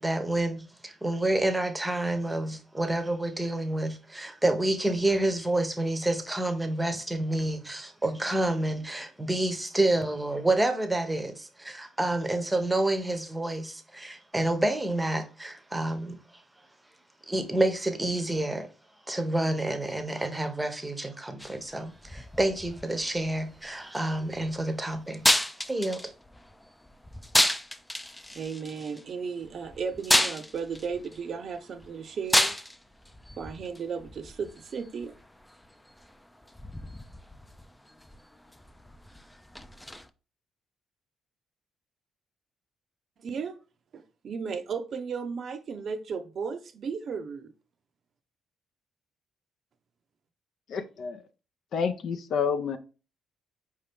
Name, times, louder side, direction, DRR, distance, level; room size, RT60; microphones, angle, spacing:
voice 1, 0.0-16.2 17.3-18.7 19.1-25.3 25.7-26.1, right 1 dB, 10° right, 0.8 m, -28 dB
sound 1, 21.4-40.1, left 1 dB, 5° left, 0.4 m, -32 dB
voice 2, 28.3-32.6 33.4-35.1 43.2-43.5 43.9-47.5, right 6 dB, 55° right, 0.5 m, -35 dB
voice 3, 50.7-51.2 51.7-52.8, left 6 dB, 65° left, 0.5 m, -29 dB
4.8 x 2.8 x 3.4 m
cardioid pair, 90°, 0 cm